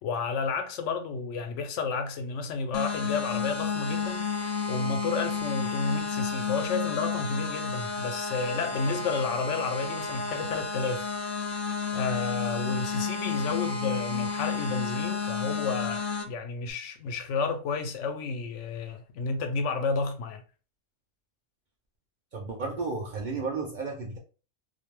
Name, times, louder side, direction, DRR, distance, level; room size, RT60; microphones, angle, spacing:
voice 1, 0.0-11.1 11.9-20.4, left 4 dB, 90° left, 0.9 m, -31 dB
sound 1, 2.7-16.2, left 5 dB, 60° left, 0.7 m, -31 dB
voice 2, 22.3-24.2, right 4 dB, 60° right, 0.5 m, -33 dB
2.4 x 2.1 x 3.0 m
omnidirectional pair, 1.2 m